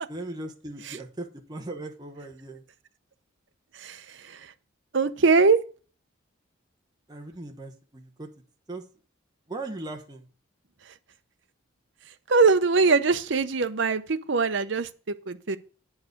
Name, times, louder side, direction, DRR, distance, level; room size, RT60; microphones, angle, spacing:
voice 1, 0.1-2.6 7.1-8.3 8.7-8.8 9.5-10.2, right 2 dB, 20° right, 1.1 m, -38 dB
voice 2, 3.8-4.4 4.9-5.6 12.3-14.9 15.3-15.6, right 4 dB, 60° right, 0.7 m, -22 dB
9.7 x 4.8 x 6.4 m
head